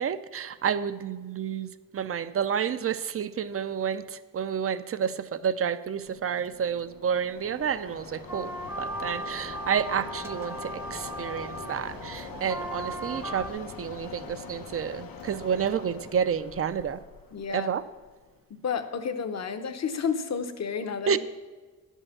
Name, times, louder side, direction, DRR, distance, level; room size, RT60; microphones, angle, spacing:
voice 1, 0.0-17.0 17.5-17.8 21.1-21.2, right 7 dB, 45° right, 14 dB, 0.5 m, -30 dB
Mechanisms, 6.0-18.4, left 6 dB, 85° left, 0.9 m, -44 dB
sound 1, 8.3-13.5, right 1 dB, 10° right, 0.7 m, -37 dB
voice 2, 17.3-17.7 18.5-21.2, left 6 dB, 50° left, 9 dB, 0.8 m, -31 dB
10.5 x 5.5 x 7.1 m, 1.3 s
wide cardioid pair, 135°, 33 cm